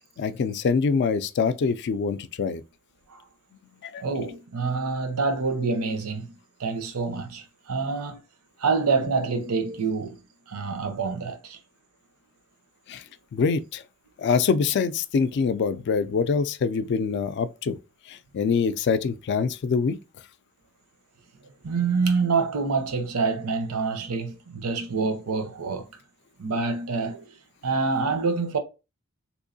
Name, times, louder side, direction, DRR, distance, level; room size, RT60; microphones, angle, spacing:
voice 1, 0.2-2.6 3.8-4.0 12.9-13.0 13.3-13.8 14.2-17.8 18.1-20.0, left 5 dB, 50° left, 0.3 m, -24 dB
voice 2, 4.0-6.3 6.6-8.2 8.6-10.2 10.5-11.6 21.4-25.9 26.4-27.4 27.6-28.6, right 4 dB, 90° right, 0.7 m, -26 dB
3.6 x 3.0 x 2.6 m
head